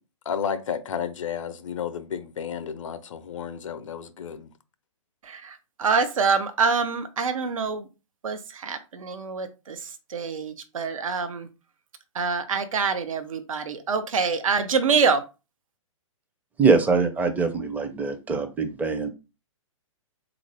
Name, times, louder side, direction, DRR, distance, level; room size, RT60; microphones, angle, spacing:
voice 1, 0.3-4.5, left 7 dB, 65° left, 0.5 m, -32 dB
voice 2, 5.2-7.9 8.2-11.5 12.1-15.2, right 5 dB, 75° right, 0.6 m, -26 dB
voice 3, 16.6-19.1, right 4 dB, 10° right, 0.5 m, -23 dB
3.7 x 2.5 x 3.3 m
hypercardioid pair, 120°, 17 cm